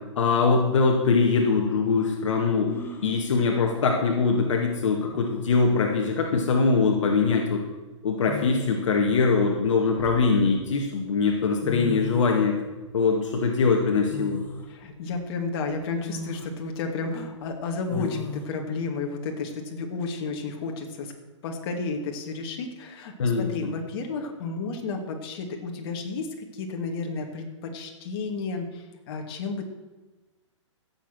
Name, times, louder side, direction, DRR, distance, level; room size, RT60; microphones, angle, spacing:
voice 1, 0.2-2.7 3.0-7.6 8.0-12.5 12.9-14.4 17.9-18.1 23.2-23.7, left 4 dB, 70° left, 1 dB, 2.1 m, -22 dB
sound 1, 2.7-3.2 4.7-4.8 5.1-5.6 6.9-7.2 8.2-9.0 9.7-10.7 11.4-11.5 11.6-12.5 14.1-14.7 15.2-15.3 16.0-16.5 17.9-18.5, left 2 dB, 15° left, 1.6 m, -38 dB
voice 2, 14.7-21.1 21.4-29.6, left 4 dB, 50° left, 2 dB, 2.5 m, -32 dB
16.5 x 7.8 x 6.3 m, 1.2 s
hypercardioid pair, 135°, 16 cm